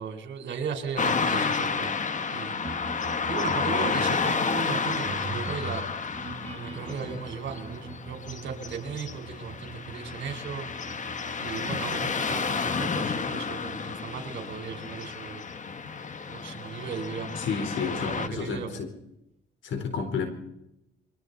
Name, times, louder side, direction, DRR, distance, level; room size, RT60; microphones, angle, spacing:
voice 1, 0.0-1.9 2.3-3.0 3.3-5.9 6.5-10.7 11.4-15.4 16.3-17.5 17.8-18.8, right 6 dB, 65° right, 6 dB, 4.3 m, -36 dB
Car passing by / Traffic noise roadway noise, 1.0-18.3, left 5 dB, 40° left, 1.6 m, -31 dB
sound 1, 2.6-17.3, right 3 dB, 30° right, 1.9 m, -43 dB
voice 2, 17.4-18.9 19.6-20.3, left 5 dB, 70° left, 6 dB, 4.1 m, -31 dB
29.5 x 23.5 x 4.1 m, 0.86 s
cardioid pair, 90°, 20 cm